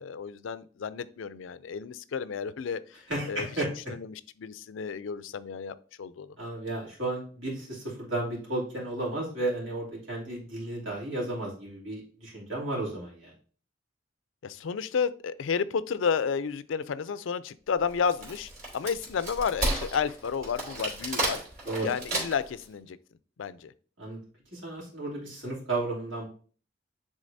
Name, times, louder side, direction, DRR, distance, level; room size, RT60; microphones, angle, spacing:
voice 1, 0.0-2.8 3.3-3.5 3.9-6.3 14.4-21.4 21.8-23.0 23.4-23.7, left 6 dB, 80° left, 0.4 m, -31 dB
voice 2, 3.1-3.7 6.4-13.3 21.6-21.9 24.0-24.2 24.5-26.3, right 2 dB, 80° right, 2.8 m, -33 dB
Wood, 17.9-22.6, right 1 dB, 45° right, 3.0 m, -32 dB
9.7 x 3.8 x 2.6 m
head